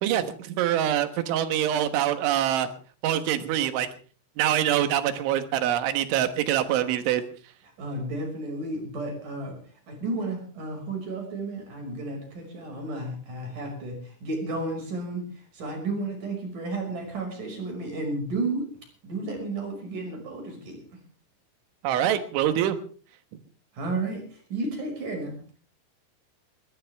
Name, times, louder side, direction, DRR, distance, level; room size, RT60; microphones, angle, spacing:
voice 1, 0.0-2.7 3.0-3.9 4.4-7.2 21.8-22.8, right 11 dB, 75° right, 9 dB, 3.6 m, -24 dB
voice 2, 7.6-9.6 9.9-18.7 19.0-21.0 23.7-25.4, right 2 dB, 40° right, 3 dB, 7.0 m, -32 dB
22.0 x 17.5 x 3.5 m, 0.41 s
omnidirectional pair, 5.8 m